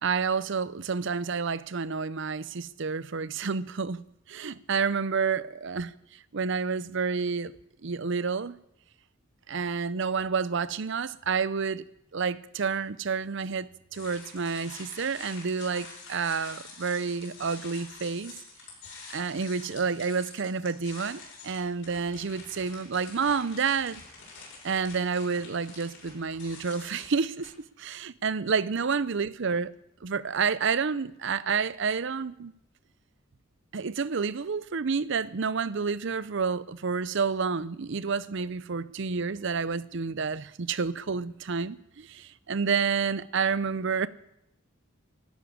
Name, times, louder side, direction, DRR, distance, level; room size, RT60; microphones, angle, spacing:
voice 1, 0.0-4.0 4.3-5.9 6.3-7.5 7.8-8.6 9.5-11.8 12.1-18.4 19.1-24.0 24.6-27.5 27.8-29.7 30.0-32.5 33.7-44.1, right 5 dB, 60° right, 0.6 m, -29 dB
sound 1, 13.9-27.5, left 4 dB, 60° left, 6.3 m, -47 dB
12.5 x 12.0 x 9.6 m
head